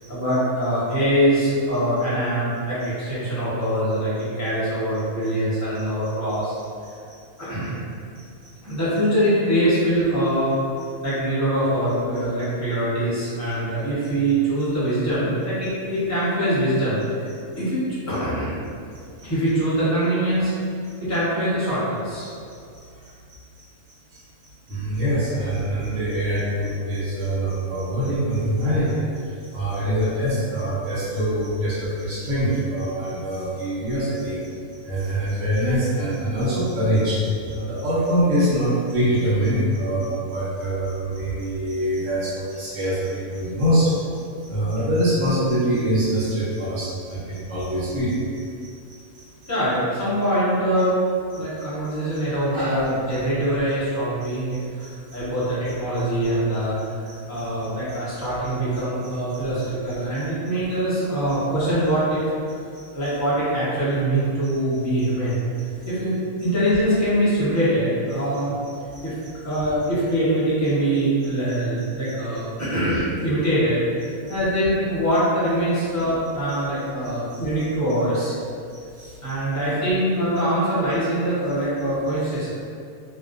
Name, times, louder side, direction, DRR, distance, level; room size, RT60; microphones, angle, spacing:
voice 1, 0.1-6.5 7.4-7.8 8.6-10.6 11.0-17.2 17.6-17.8 18.1-18.5 19.2-20.5 21.0-22.3 28.6-28.8 41.3-41.4 49.5-50.9 51.3-56.9 57.3-62.2 62.9-65.4 65.9-66.2 66.4-68.5 69.0-69.1 69.4-73.8 74.3-78.4 79.2-82.5, right 1 dB, 20° left, -11 dB, 0.5 m, -23 dB
voice 2, 24.7-34.5 34.8-44.0 44.4-49.5 51.3-51.4 52.1-52.8 54.2-54.9 55.4-55.5 55.9-56.0 57.1-57.4 57.9-58.5 59.6-59.7 60.1-60.2 62.7-63.1 64.4-64.8 68.3-68.4 68.9-69.6 71.5-71.6 72.1-72.2 72.6-72.7 74.3-74.5 76.5-76.6 77.3-77.4 78.9-79.3, equal, 65° right, -8 dB, 1.0 m, -25 dB
2.4 x 2.1 x 2.4 m, 2.3 s
omnidirectional pair, 1.5 m